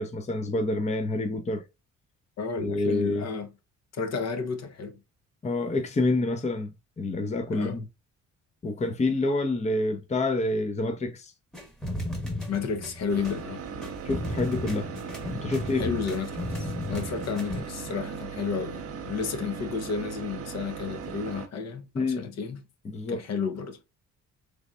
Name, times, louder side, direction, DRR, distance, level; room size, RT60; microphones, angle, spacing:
voice 1, 0.0-1.6 2.6-3.2 5.4-7.9 8.6-11.3 14.0-14.9 15.4-15.9 21.9-22.3 22.9-23.2, left 2 dB, 25° left, 0.6 m, -27 dB
voice 2, 2.4-3.5 3.9-5.0 7.5-7.8 12.5-13.6 15.8-22.6 23.1-23.8, left 5 dB, 60° left, 0.8 m, -32 dB
sound 1, 11.5-17.6, left 1 dB, ahead, 1.0 m, -35 dB
sound 2, 13.1-21.5, right 6 dB, 50° right, 0.7 m, -38 dB
3.4 x 3.2 x 2.4 m
cardioid pair, 90°, 30 cm